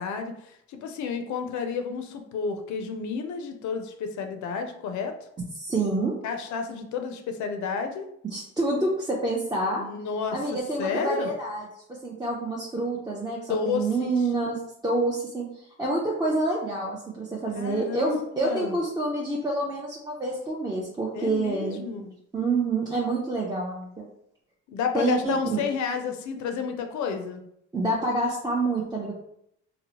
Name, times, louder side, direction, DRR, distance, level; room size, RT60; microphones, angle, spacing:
voice 1, 0.0-5.1 6.2-8.1 9.8-10.4 10.8-11.3 13.5-14.1 17.5-18.8 21.2-22.1 24.7-27.4, left 5 dB, 70° left, 6 dB, 0.5 m, -31 dB
voice 2, 5.6-6.2 8.2-9.8 10.3-14.6 14.8-21.8 22.3-24.1 24.9-25.6 27.7-29.2, right 2 dB, 15° right, -3 dB, 0.4 m, -27 dB
2.8 x 2.0 x 2.8 m, 0.74 s
cardioid pair, 100°, 30 cm